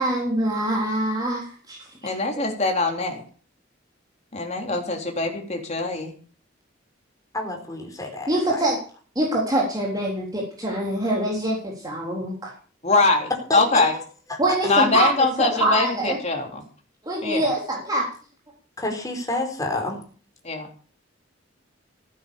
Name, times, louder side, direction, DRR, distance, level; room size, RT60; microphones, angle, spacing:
voice 1, 0.0-2.5 8.3-8.8 9.2-12.5 14.4-16.2 17.0-18.0, right 1 dB, 20° right, -3 dB, 3.8 m, -24 dB
voice 2, 2.0-3.2 4.3-6.1 12.8-13.2 13.5-13.9 14.7-16.6 17.2-17.5 20.4-20.7, left 3 dB, 35° left, 2 dB, 3.6 m, -22 dB
voice 3, 7.3-8.6 13.5-13.9 14.6-14.7 18.8-20.0, left 2 dB, 20° left, 2 dB, 4.4 m, -29 dB
15.5 x 9.4 x 7.1 m, 0.42 s
head